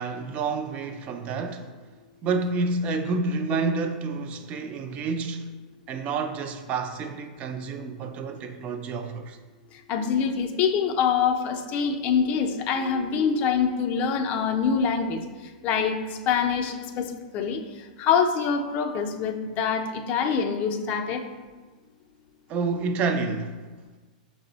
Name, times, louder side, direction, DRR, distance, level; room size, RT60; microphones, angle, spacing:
voice 1, 0.0-1.7 2.2-5.5 5.9-9.4 22.5-23.6, right 4 dB, 30° right, 0.4 m, -29 dB
voice 2, 9.9-15.2 15.6-16.0 16.3-17.6 18.0-21.2, left 6 dB, 40° left, 0.5 m, -25 dB
5.8 x 2.0 x 3.9 m
hypercardioid pair, 125°, 4 cm